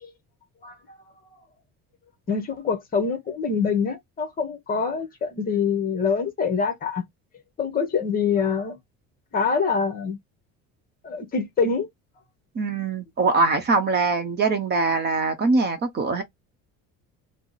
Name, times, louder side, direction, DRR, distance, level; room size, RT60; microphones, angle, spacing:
voice 1, 0.6-1.0 2.3-7.0 7.6-8.8 9.3-10.2 11.0-11.9, left 5 dB, 30° left, 0.8 m, -25 dB
voice 2, 12.5-16.2, right 3 dB, 30° right, 0.8 m, -22 dB
2.8 x 2.0 x 3.8 m
cardioid pair, 150°, 32 cm